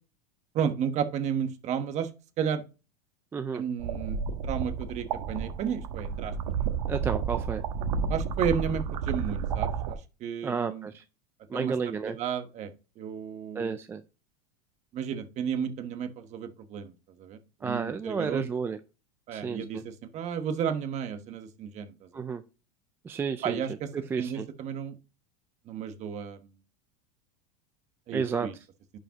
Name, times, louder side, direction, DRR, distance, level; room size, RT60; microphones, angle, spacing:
voice 1, 0.5-2.1 2.4-2.6 3.5-6.7 8.1-10.9 11.5-12.7 13.0-13.7 14.9-16.9 17.2-18.4 19.3-22.2 23.4-23.9 24.2-25.0 25.7-26.4 28.1-28.5, right 7 dB, 35° right, 9 dB, 1.2 m, -33 dB
voice 2, 3.3-3.6 6.9-7.6 10.4-11.0 11.5-12.2 13.5-14.0 17.6-18.8 19.3-19.8 22.1-22.4 23.0-23.6 23.9-24.5 28.1-28.5, right 5 dB, 10° right, 9 dB, 0.3 m, -31 dB
sound 1, 3.8-9.9, right 6 dB, 75° right, 1.2 m, -31 dB
11.0 x 5.0 x 2.9 m, 0.32 s
supercardioid pair, 140°, 20 cm